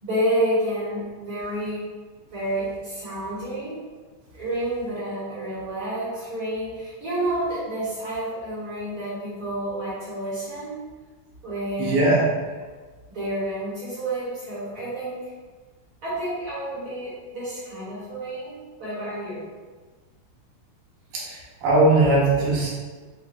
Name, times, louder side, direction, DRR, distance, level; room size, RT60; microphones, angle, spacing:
voice 1, 0.0-1.9 2.3-3.8 4.3-10.8 11.4-12.2 13.1-15.3 16.0-19.4, right 1 dB, 55° right, -9 dB, 1.6 m, -29 dB
voice 2, 11.8-12.3 21.1-22.7, right 2 dB, 75° right, -6 dB, 2.4 m, -20 dB
6.3 x 2.6 x 2.4 m, 1.4 s
omnidirectional pair, 3.7 m